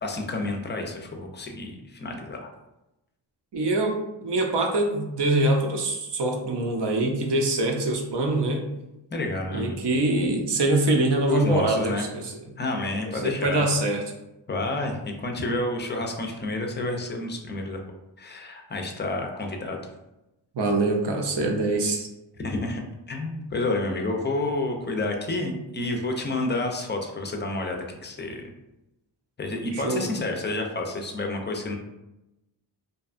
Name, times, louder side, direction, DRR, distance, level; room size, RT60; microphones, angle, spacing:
voice 1, 0.0-2.5 9.1-9.8 11.3-12.0 12.6-13.7 14.5-17.8 18.2-19.8 22.4-22.8 23.1-28.4 29.4-31.7, left 2 dB, 25° left, 3 dB, 0.4 m, -29 dB
voice 2, 3.5-8.7 9.5-12.4 13.1-14.1 20.5-22.1 29.7-30.1, right 2 dB, 60° right, 2 dB, 0.6 m, -24 dB
2.6 x 2.2 x 2.4 m, 0.93 s
cardioid pair, 60°, 48 cm